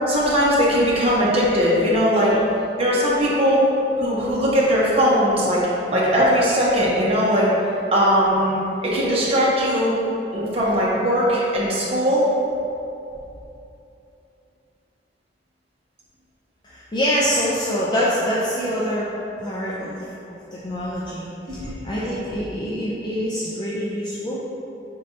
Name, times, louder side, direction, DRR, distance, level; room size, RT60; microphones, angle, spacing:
voice 1, 0.1-2.4 2.8-3.6 4.0-5.6 5.9-7.5 7.9-9.9 10.3-12.3 21.5-22.2, equal, 35° right, -6 dB, 0.9 m, -19 dB
voice 2, 16.6-19.1 19.4-20.0 20.5-24.5, equal, 25° left, -7 dB, 0.4 m, -25 dB
5.2 x 3.2 x 2.8 m, 2.8 s
head